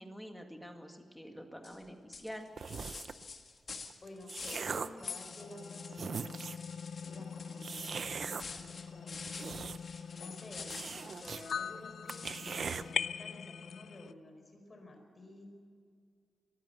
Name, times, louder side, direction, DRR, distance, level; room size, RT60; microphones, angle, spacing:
voice 1, 0.0-2.5, equal, 5° left, 4 dB, 2.0 m, -47 dB
sound 1, 1.6-1.8 2.1-4.7 5.0-6.0 6.2-11.7 12.1-13.0, left 4 dB, 50° left, 1.7 m, -48 dB
sound 2, 2.6-3.2 3.9-5.1 5.6-5.7 5.9-6.7 7.6-8.4 9.1-10.0 10.3-10.4 10.7-11.4 11.8-11.9 12.1-12.8, right 5 dB, 50° right, 0.7 m, -40 dB
voice 2, 4.0-6.5 7.0-9.6 10.1-15.4, left 1 dB, 30° left, 2 dB, 4.7 m, -52 dB
sound 3, 5.0-14.1, left 7 dB, 70° left, 0.5 m, -42 dB
23.0 x 15.0 x 7.7 m, 2.1 s
wide cardioid pair, 155°, 0 cm